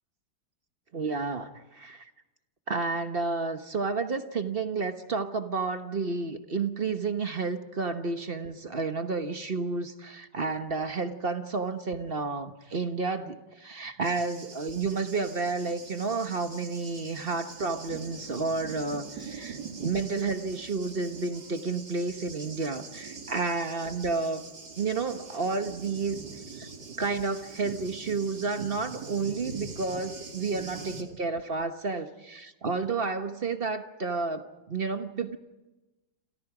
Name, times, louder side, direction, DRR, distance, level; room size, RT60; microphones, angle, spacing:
voice 1, 0.9-2.1 2.7-24.5 24.8-26.2 26.5-26.7 27.0-35.4, right 4 dB, 35° right, 8 dB, 1.2 m, -31 dB
Thunder, 14.0-31.0, right 4 dB, 55° right, 2.9 m, -43 dB
28.5 x 27.5 x 5.0 m, 1.1 s
omnidirectional pair, 2.1 m